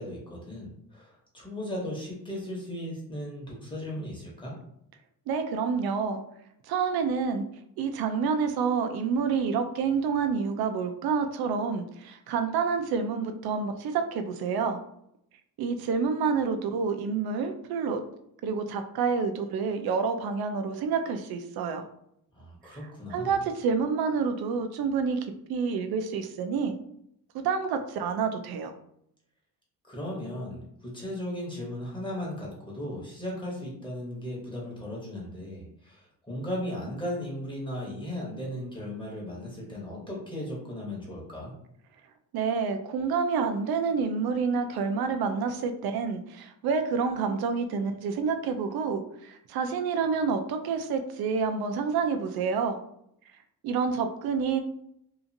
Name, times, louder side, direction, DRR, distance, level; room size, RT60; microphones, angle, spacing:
voice 1, 0.0-4.5 22.3-23.3 29.8-41.5, left 1 dB, 15° left, -4 dB, 1.0 m, -36 dB
voice 2, 5.3-6.2 6.6-7.4 7.8-14.8 15.6-18.0 18.4-21.8 23.1-25.2 25.5-26.7 27.4-28.7 42.3-52.8 53.6-54.6, right 5 dB, 85° right, 7 dB, 0.5 m, -28 dB
2.8 x 2.4 x 2.5 m, 0.74 s
cardioid pair, 135°, 36 cm